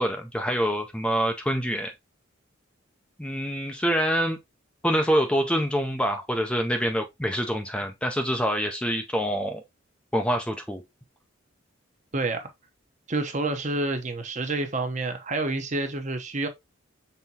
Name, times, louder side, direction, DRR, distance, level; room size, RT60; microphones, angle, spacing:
voice 1, 0.0-1.9 3.2-4.4 4.8-9.6 10.1-10.8, equal, 5° left, 0.4 m, -26 dB
voice 2, 12.1-12.5 13.1-16.5, right 2 dB, 35° right, 0.7 m, -28 dB
5.6 x 3.5 x 2.7 m
head